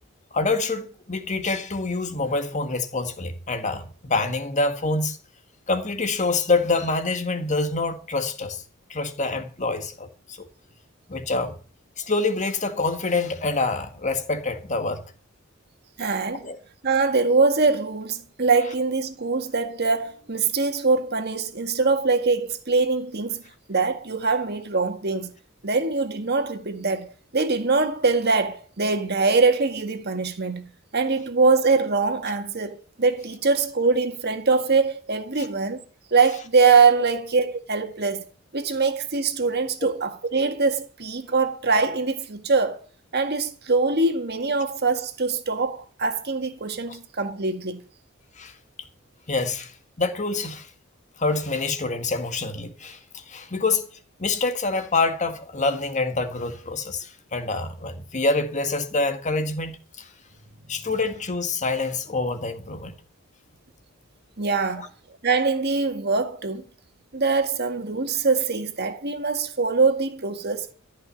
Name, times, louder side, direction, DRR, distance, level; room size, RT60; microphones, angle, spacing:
voice 1, 0.3-5.2 5.7-8.6 8.9-10.5 11.1-11.6 12.0-15.0 16.4-16.6 48.4-48.5 49.3-49.7 50.0-50.7 51.2-53.9 54.2-60.1 60.7-63.0 64.8-64.9, left 3 dB, 35° left, 1.8 m, -26 dB
voice 2, 16.0-16.5 16.8-23.4 23.7-25.3 25.6-35.8 36.1-38.2 38.5-42.8 43.1-47.8 64.4-64.9 65.2-66.6 67.1-70.7, right 4 dB, 55° right, 1.9 m, -23 dB
14.5 x 5.9 x 10.0 m
head